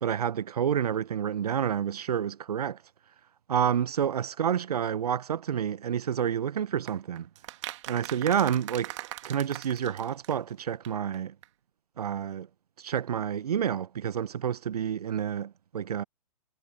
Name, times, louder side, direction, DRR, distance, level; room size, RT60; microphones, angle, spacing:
voice 1, 0.0-2.8 3.5-7.3 7.9-8.9 9.2-11.3 12.0-12.5 12.8-16.0, right 8 dB, 75° right, 0.7 m, -29 dB
sound 1, 6.9-10.6 10.8-10.9 11.1-11.2 11.4-11.5, right 16 dB, 50° right, 2.3 m, -41 dB
hypercardioid pair, 120°, 20 cm